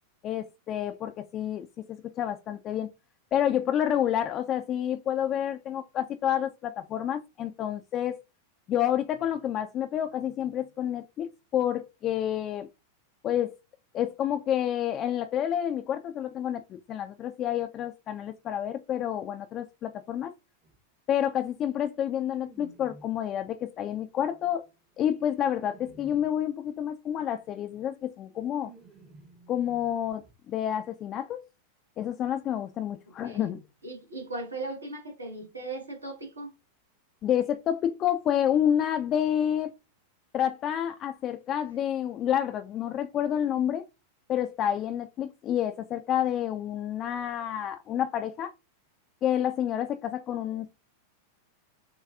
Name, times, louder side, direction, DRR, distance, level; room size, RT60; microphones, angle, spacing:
voice 1, 0.2-2.9 3.3-8.2 8.7-12.7 13.2-13.5 13.9-20.3 21.1-24.7 25.0-28.7 29.5-31.4 32.0-33.6 37.2-39.7 40.3-43.8 44.3-48.5 49.2-50.7, left 10 dB, 30° left, 0.3 m, -29 dB
sound 1, 20.6-20.8 22.2-23.3 24.1-26.4 27.7-27.8 28.1-30.4 30.6-30.7 31.0-31.1, right 3 dB, 20° right, 0.7 m, -54 dB
voice 2, 33.8-36.5, right 2 dB, 80° right, 1.3 m, -38 dB
6.5 x 2.3 x 2.4 m
figure-of-eight pair, 90°, 0 cm